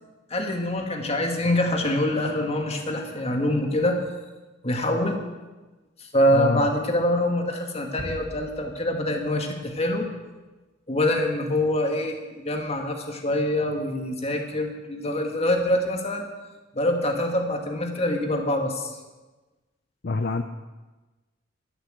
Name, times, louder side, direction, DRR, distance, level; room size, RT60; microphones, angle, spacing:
voice 1, 0.3-4.0 4.6-5.2 6.0-10.1 10.9-16.3 16.7-19.0, left 1 dB, 35° left, 3 dB, 1.9 m, -25 dB
voice 2, 6.3-6.7 20.0-20.4, left 3 dB, 55° left, 7 dB, 0.6 m, -26 dB
sound 1, 8.0-9.9, right 1 dB, 40° right, 1.2 m, -41 dB
11.5 x 11.5 x 7.6 m, 1.2 s
head